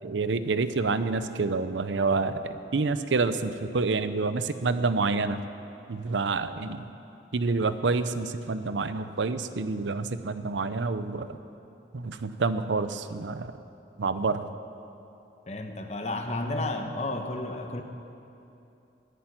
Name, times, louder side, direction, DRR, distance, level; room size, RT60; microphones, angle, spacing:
voice 1, 0.0-5.4 5.9-6.9 7.3-11.4 11.9-13.5 14.0-14.5, right 4 dB, 85° right, 12 dB, 0.6 m, -28 dB
voice 2, 15.5-17.8, left 2 dB, 35° left, 5 dB, 1.0 m, -32 dB
10.5 x 10.0 x 8.9 m, 2.8 s
head